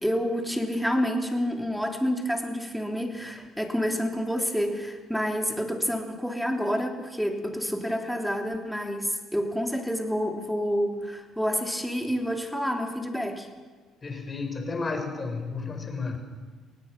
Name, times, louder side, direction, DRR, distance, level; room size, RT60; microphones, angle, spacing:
voice 1, 0.0-13.5, equal, ahead, 3 dB, 3.3 m, -28 dB
voice 2, 14.0-16.2, left 4 dB, 35° left, 5 dB, 4.9 m, -32 dB
24.0 x 18.0 x 6.0 m, 1.4 s
hypercardioid pair, 55°, 0 cm